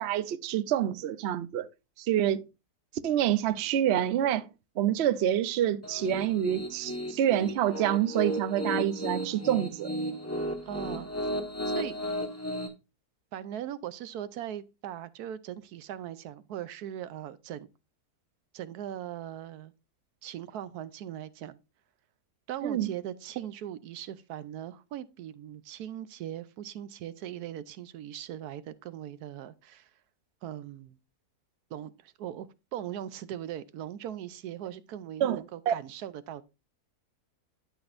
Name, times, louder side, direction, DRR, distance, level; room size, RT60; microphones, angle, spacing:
voice 1, 0.0-1.7 2.0-2.5 3.0-4.5 4.8-9.9 22.6-22.9 35.2-35.7, right 11 dB, 60° right, 0.7 m, -27 dB
Piano, 5.8-12.7, equal, 10° left, 1.1 m, -34 dB
voice 2, 10.7-11.1 11.7-12.0 13.3-17.7 18.5-19.7 20.2-21.6 22.5-29.9 30.4-31.0 31.7-36.4, right 11 dB, 80° right, 1.1 m, -40 dB
12.0 x 6.0 x 2.5 m
omnidirectional pair, 1.7 m